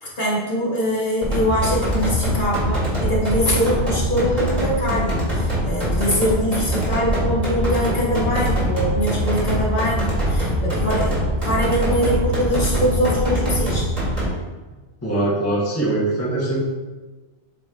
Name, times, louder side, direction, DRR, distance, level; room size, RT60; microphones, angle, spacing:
voice 1, 0.0-13.9, equal, 45° left, -6 dB, 1.6 m, -23 dB
sound 1, 1.2-14.3, equal, 35° right, 2.1 m, -23 dB
voice 2, 15.0-16.6, right 2 dB, 15° left, -5 dB, 1.1 m, -22 dB
8.3 x 3.1 x 3.7 m, 1.3 s
omnidirectional pair, 1.2 m